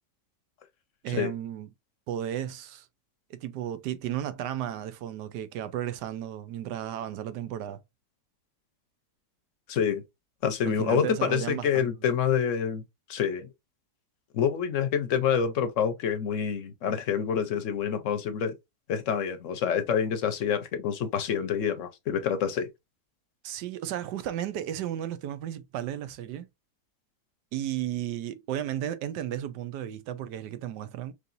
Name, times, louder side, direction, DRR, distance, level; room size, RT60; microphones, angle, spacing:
voice 1, 1.0-1.7 2.1-2.9 3.3-7.8 10.6-11.9 23.4-26.5 27.5-31.1, right 11 dB, 85° right, 1.3 m, -34 dB
voice 2, 9.7-10.0 10.4-12.8 13.1-13.5 14.3-18.5 18.9-22.7, left 7 dB, 60° left, 0.9 m, -27 dB
4.8 x 3.2 x 2.5 m
omnidirectional pair, 1.8 m